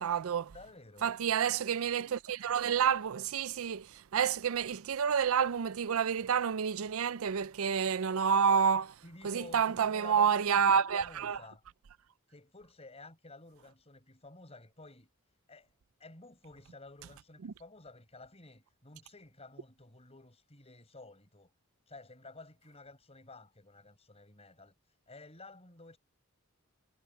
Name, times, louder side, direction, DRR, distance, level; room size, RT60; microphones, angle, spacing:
voice 1, 0.0-0.5 1.0-9.0 9.2-11.4 17.4-17.5, right 7 dB, 75° right, 0.5 m, -29 dB
voice 2, 0.5-1.1 9.0-11.6 12.3-15.1 15.5-15.7 16.0-21.5 21.9-24.7 25.1-26.0, left 2 dB, 30° left, 5.5 m, -52 dB
head